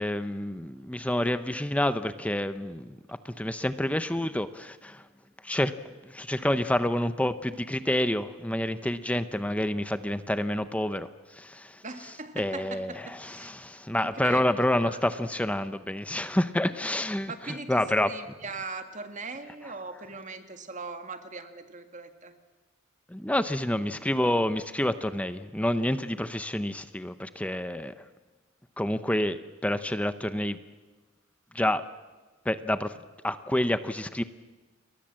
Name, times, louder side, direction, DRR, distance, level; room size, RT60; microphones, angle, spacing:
voice 1, 0.0-5.0 5.4-5.7 6.0-11.8 12.4-18.1 23.1-28.0 28.8-30.6 31.5-31.9 32.4-32.9 33.2-34.2, left 1 dB, 5° left, 11 dB, 0.7 m, -28 dB
voice 2, 11.8-13.5 13.9-14.4 14.9-15.0 17.3-22.3, right 3 dB, 35° right, 8 dB, 1.9 m, -40 dB
29.5 x 22.5 x 7.7 m, 1.3 s
head